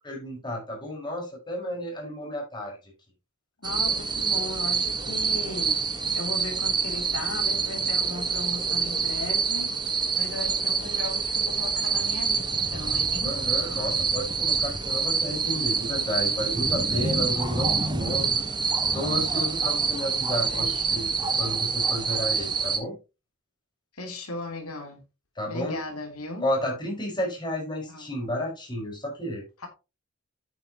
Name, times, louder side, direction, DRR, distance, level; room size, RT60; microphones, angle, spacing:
voice 1, 0.0-2.9 13.2-18.4 18.9-21.1 21.4-23.0 25.4-25.8 26.4-29.4, left 1 dB, 20° left, 5.3 m, -32 dB
voice 2, 3.6-5.8 6.1-9.8 10.2-13.4 20.4-21.0 23.9-25.0 25.5-26.5 27.9-28.1 29.6-29.7, left 2 dB, 85° left, 3.1 m, -37 dB
sound 1, 3.6-22.8, right 5 dB, 20° right, 1.5 m, -26 dB
9.8 x 9.2 x 3.0 m
head